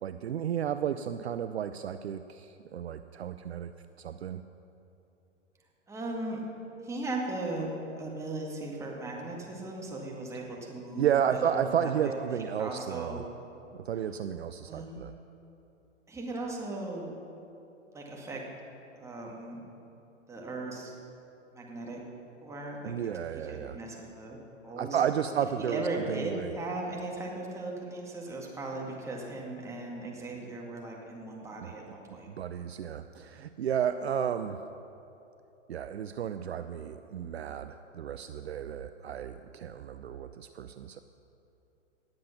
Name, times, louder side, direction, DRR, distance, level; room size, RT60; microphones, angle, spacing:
voice 1, 0.0-3.7 4.0-4.4 11.0-13.2 13.9-15.1 22.8-23.8 24.8-26.5 32.4-34.6 35.7-41.0, right 9 dB, 60° right, 10 dB, 0.5 m, -32 dB
voice 2, 5.9-6.4 6.8-7.7 8.0-12.2 12.6-13.3 14.6-15.1 16.1-17.1 17.9-18.4 18.9-19.6 20.3-20.9 21.5-22.0 22.4-23.0 23.3-24.4 24.6-32.3, right 2 dB, 10° right, -2 dB, 1.9 m, -37 dB
18.5 x 7.6 x 5.8 m, 2.9 s
figure-of-eight pair, 110°, 37 cm